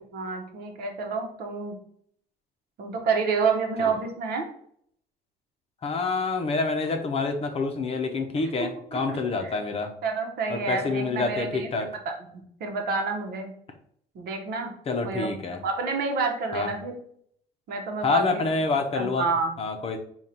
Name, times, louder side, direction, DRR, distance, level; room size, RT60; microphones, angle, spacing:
voice 1, 0.1-1.8 2.8-4.4 8.9-9.5 10.0-13.5 14.1-14.7 15.0-16.9 17.7-18.4 18.9-19.5, right 4 dB, 70° right, 3 dB, 0.9 m, -29 dB
voice 2, 5.8-9.9 10.5-11.9 14.9-15.6 16.5-16.7 18.0-19.3 19.6-20.0, left 4 dB, 35° left, 5 dB, 0.6 m, -27 dB
3.7 x 2.3 x 4.2 m, 0.66 s
cardioid pair, 110°, 17 cm